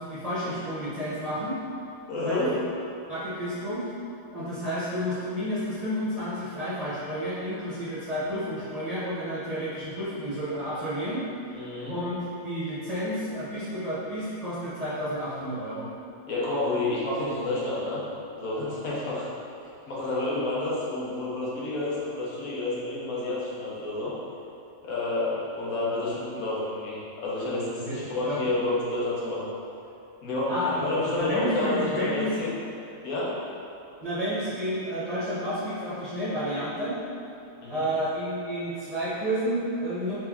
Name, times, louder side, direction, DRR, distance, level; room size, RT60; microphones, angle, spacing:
voice 1, 0.0-1.6 2.2-2.5 3.1-3.8 4.3-11.2 11.9-15.9 27.9-28.5 30.5-32.3 34.0-37.0 37.7-40.2, equal, 35° right, -11 dB, 0.7 m, -31 dB
voice 2, 2.1-2.5 11.5-12.0 16.3-18.0 18.3-19.3 19.9-24.1 24.8-29.5 30.2-32.5 33.0-33.4 37.6-37.9, left 2 dB, 80° left, -7 dB, 1.3 m, -29 dB
3.5 x 3.1 x 3.5 m, 2.8 s
omnidirectional pair, 1.5 m